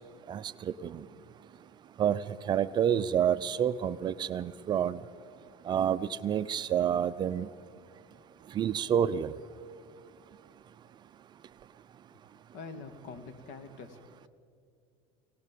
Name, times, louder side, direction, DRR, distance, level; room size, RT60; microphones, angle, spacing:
voice 1, 2.5-5.0 5.7-7.5 8.6-9.3, right 9 dB, 30° right, 14 dB, 0.5 m, -28 dB
voice 2, 12.5-14.0, left 4 dB, 65° left, 8 dB, 2.3 m, -45 dB
23.5 x 18.0 x 7.6 m, 2.3 s
supercardioid pair, 135°, 14 cm